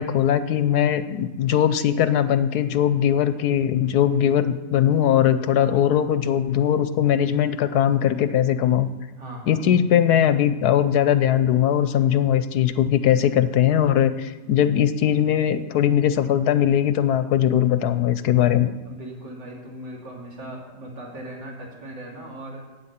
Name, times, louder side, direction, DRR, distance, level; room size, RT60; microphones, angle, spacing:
voice 1, 0.0-8.9 9.5-18.7, left 10 dB, 70° left, 12 dB, 1.1 m, -20 dB
voice 2, 9.2-9.6 18.8-22.7, right 1 dB, 80° right, -2 dB, 3.4 m, -38 dB
15.0 x 8.7 x 5.7 m, 1.1 s
omnidirectional pair, 1.9 m